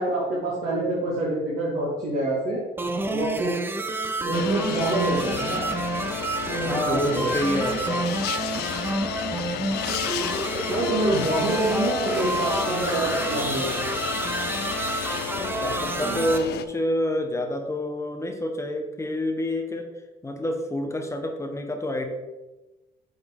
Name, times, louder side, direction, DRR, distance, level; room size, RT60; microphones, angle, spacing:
voice 1, 0.0-2.6 3.1-3.5 4.2-5.7 6.5-7.3 10.6-13.7 16.0-16.3, right 1 dB, 50° right, -6 dB, 1.7 m, -26 dB
sound 1, 2.8-16.4, right 3 dB, 15° right, 0.5 m, -29 dB
sound 2, 4.3-16.7, left 10 dB, 75° left, 0.4 m, -32 dB
voice 2, 6.7-8.0 15.4-19.9 20.2-22.1, left 1 dB, 15° left, 4 dB, 0.8 m, -28 dB
6.8 x 3.9 x 3.6 m, 1.1 s
cardioid pair, 110°, 17 cm